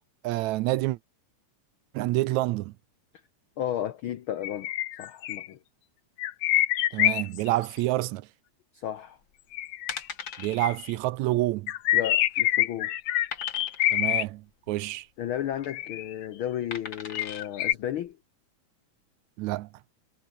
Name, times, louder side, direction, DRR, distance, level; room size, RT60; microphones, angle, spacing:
voice 1, 0.2-1.0 1.9-2.7 6.9-8.3 10.4-11.7 13.9-15.1 19.4-19.7, right 17 dB, 80° right, 1.8 m, -28 dB
voice 2, 3.6-4.7 5.0-5.6 8.7-9.2 11.9-12.9 15.2-18.2, left 11 dB, 85° left, 1.1 m, -33 dB
sound 1, 4.4-5.5 6.2-7.7 9.5-10.9 11.7-14.2 15.7-16.3 17.1-17.7, left 14 dB, 70° left, 1.9 m, -26 dB
sound 2, 9.2-9.4 9.9-10.6 11.0-11.1 11.4-11.5 12.1-12.5 13.3-14.0 15.3-15.7 16.7-17.5 18.1-18.2, left 6 dB, 40° left, 2.6 m, -39 dB
omnidirectional pair, 3.5 m